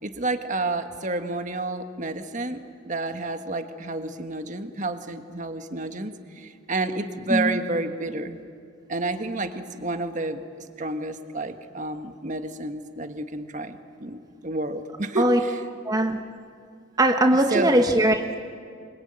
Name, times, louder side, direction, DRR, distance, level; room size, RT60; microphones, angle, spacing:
voice 1, 0.0-8.4 8.9-10.4 10.8-15.6 17.5-17.8, right 2 dB, 40° right, 8 dB, 1.5 m, -30 dB
voice 2, 15.8-16.2 17.0-18.4, right 1 dB, 20° right, 5 dB, 1.1 m, -20 dB
27.0 x 24.0 x 8.9 m, 2.2 s
head